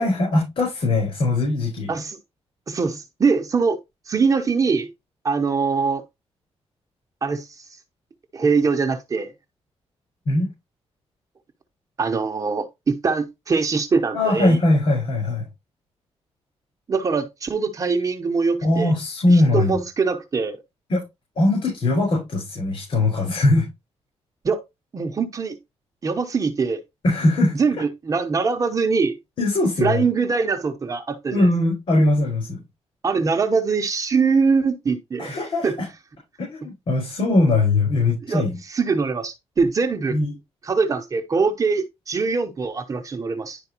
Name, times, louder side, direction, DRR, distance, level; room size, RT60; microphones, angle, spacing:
voice 1, 0.0-1.9 10.2-10.5 14.1-15.5 18.6-19.8 20.9-21.0 21.3-23.7 27.0-27.6 29.4-30.0 31.3-32.6 35.2-35.9 36.4-38.5 40.1-40.3, left 2 dB, 55° left, 5.2 m, -20 dB
voice 2, 2.7-3.8 4.1-4.9 5.2-6.0 7.2-7.6 8.3-9.3 12.0-14.6 16.9-18.9 19.3-20.6 24.4-24.6 24.9-25.6 26.0-26.8 27.5-29.2 29.8-31.5 33.0-35.4 35.6-35.8 38.3-40.2 40.6-43.6, right 4 dB, 30° right, 0.9 m, -22 dB
11.0 x 4.5 x 3.0 m
wide cardioid pair, 170°, 11 cm